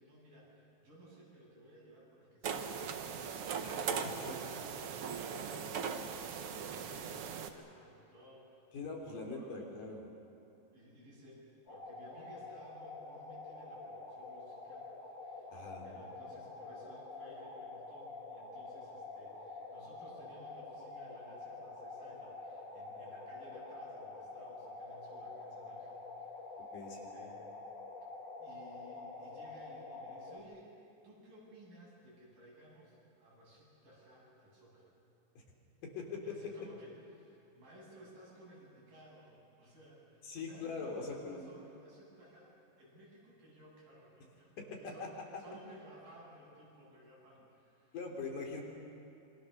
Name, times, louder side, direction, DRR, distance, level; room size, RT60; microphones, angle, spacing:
voice 1, 0.0-3.0 3.6-5.0 5.3-9.8 10.7-15.5 15.8-27.5 28.4-30.7 31.0-34.9 36.2-48.0 48.4-48.5, equal, 85° right, -5 dB, 9.9 m, -58 dB
sound 1, 2.4-7.5, right 6 dB, 60° right, 1.6 m, -39 dB
voice 2, 3.6-4.0 5.3-5.5 8.7-10.1 15.5-15.8 26.7-27.1 35.4-35.5 36.0-36.2 40.3-41.5 44.8-45.1 47.9-48.6, left 4 dB, 70° left, 0 dB, 4.8 m, -42 dB
sound 2, 11.7-30.4, left 3 dB, 35° left, 2.3 m, -47 dB
27.0 x 24.5 x 6.7 m, 2.7 s
omnidirectional pair, 4.0 m